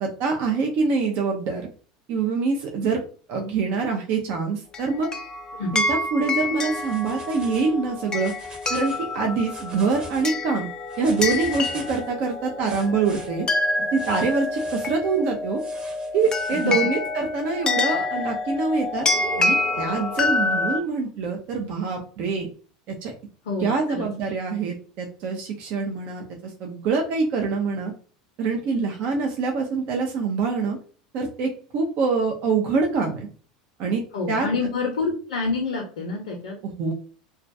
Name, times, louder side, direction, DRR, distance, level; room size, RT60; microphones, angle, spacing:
voice 1, 0.0-1.7 2.1-3.0 3.3-5.1 5.7-8.3 8.7-10.7 11.0-13.5 13.9-15.6 16.1-19.1 19.4-22.5 22.9-23.1 23.6-27.9 28.4-30.8 31.1-33.3 33.8-34.0 34.3-34.5 36.6-36.9, right 4 dB, 55° right, 2 dB, 0.5 m, -25 dB
sound 1, 4.7-20.8, left 3 dB, 25° left, 0.3 m, -27 dB
sound 2, 6.7-7.7 8.1-9.0 9.4-10.2 10.9-12.1 12.6-13.3 13.9-14.9 15.6-16.8, right 2 dB, 35° right, 1.1 m, -43 dB
Singing, 19.1-21.1, right 5 dB, 90° right, 0.7 m, -38 dB
voice 2, 23.4-24.1 34.1-36.6, left 3 dB, 75° left, 0 dB, 0.5 m, -27 dB
2.2 x 2.2 x 2.5 m, 0.40 s
hypercardioid pair, 80°, 3 cm